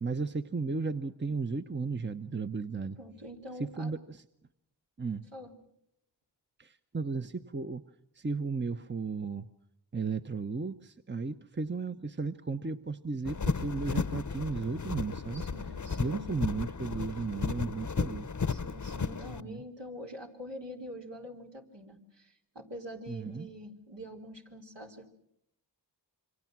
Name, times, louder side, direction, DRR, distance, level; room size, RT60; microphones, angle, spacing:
voice 1, 0.0-3.0 3.6-4.2 5.0-5.2 6.6-7.8 8.2-9.5 9.9-15.4 16.0-18.3 19.4-19.6 23.1-23.5, right 4 dB, 25° right, 8 dB, 0.9 m, -34 dB
voice 2, 3.0-3.9 5.3-5.6 15.3-16.3 18.5-25.1, equal, 75° right, 1 dB, 3.4 m, -45 dB
sound 1, 13.2-19.4, left 5 dB, 45° left, 0.9 m, -34 dB
27.5 x 24.5 x 6.1 m, 0.75 s
cardioid pair, 45°, 43 cm